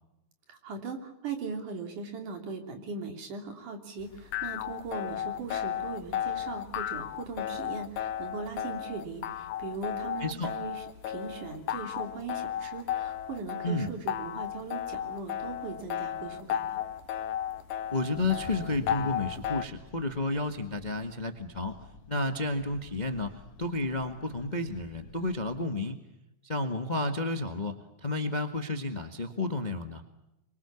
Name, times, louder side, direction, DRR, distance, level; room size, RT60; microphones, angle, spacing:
voice 1, 0.5-16.8, right 4 dB, 75° right, 4 dB, 4.7 m, -39 dB
sound 1, 4.0-19.7, left 10 dB, 75° left, 2.5 m, -34 dB
voice 2, 17.9-21.8 22.1-23.3 23.6-26.0 26.4-30.0, left 2 dB, 25° left, 6 dB, 1.0 m, -31 dB
sound 2, 18.2-25.6, left 5 dB, 55° left, 2.5 m, -49 dB
26.5 x 23.5 x 7.1 m, 0.91 s
omnidirectional pair, 3.6 m